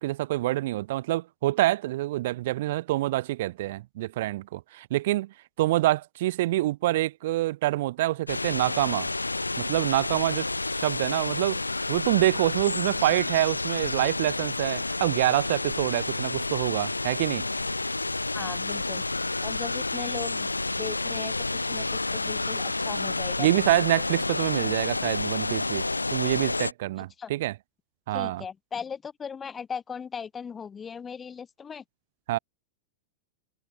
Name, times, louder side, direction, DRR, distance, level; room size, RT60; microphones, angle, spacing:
voice 1, 0.0-9.1 9.6-11.6 11.9-17.5 23.4-27.6 28.1-28.4 32.3-32.4, right 16 dB, 55° right, 0.4 m, -26 dB
sound 1, 8.3-26.7, left 2 dB, 80° left, 1.0 m, -30 dB
voice 2, 18.3-19.0 19.4-20.5 20.8-21.3 21.7-21.9 22.1-23.8 27.2-27.3 28.1-31.8, left 6 dB, 20° left, 0.8 m, -38 dB
figure-of-eight pair, 90°, 0 cm